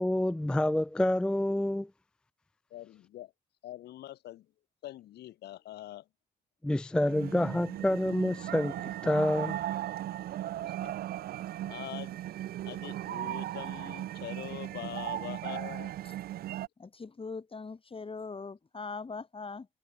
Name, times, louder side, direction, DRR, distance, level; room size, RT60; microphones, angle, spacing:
voice 1, 0.0-1.9 6.6-8.8 9.0-9.6, left 1 dB, 5° left, 0.4 m, -28 dB
voice 2, 2.7-3.3 3.6-4.5 4.8-6.1 10.6-11.0 11.7-12.2 12.6-15.9, left 14 dB, 80° left, 2.9 m, -43 dB
sound 1, 6.9-16.7, right 13 dB, 65° right, 0.5 m, -37 dB
voice 3, 16.8-19.7, left 4 dB, 35° left, 2.7 m, -41 dB
supercardioid pair, 55°, 17 cm